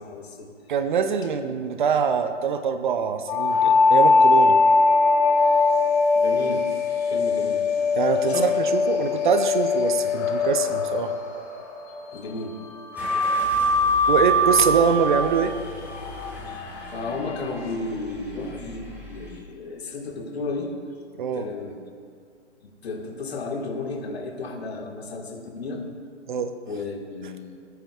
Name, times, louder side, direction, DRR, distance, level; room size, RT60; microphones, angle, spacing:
voice 1, 0.0-0.5 6.1-7.7 8.2-8.5 12.1-12.6 16.5-20.7 21.3-21.8 22.6-25.8 26.7-27.6, left 3 dB, 60° left, 2 dB, 1.7 m, -33 dB
voice 2, 0.7-4.6 7.9-11.1 14.1-15.5 21.2-21.5 26.3-26.5, right 6 dB, 45° right, 10 dB, 0.7 m, -24 dB
sound 1, 3.3-12.1 12.9-17.7, left 3 dB, 30° left, 1.9 m, -21 dB
Car / Engine starting, 12.9-19.4, right 1 dB, 5° right, 2.0 m, -40 dB
19.5 x 9.4 x 2.4 m, 2.1 s
figure-of-eight pair, 130°, 36 cm